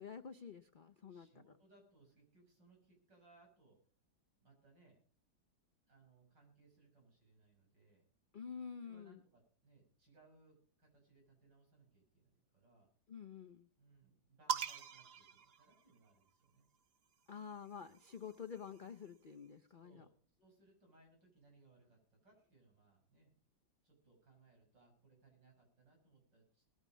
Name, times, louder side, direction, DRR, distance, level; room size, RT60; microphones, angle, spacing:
voice 1, 0.0-1.4 8.3-9.2 13.1-13.7 17.3-20.0, left 7 dB, 85° left, 7 dB, 0.4 m, -49 dB
voice 2, 1.1-3.8 4.4-5.0 5.9-8.0 8.8-12.9 13.8-16.7 19.8-20.1 20.4-23.3 23.8-26.6, right 3 dB, 80° right, 0 dB, 7.0 m, -68 dB
sound 1, 14.5-16.3 17.4-19.1, right 6 dB, 50° right, 0.7 m, -44 dB
19.5 x 9.1 x 5.1 m, 0.43 s
omnidirectional pair, 1.9 m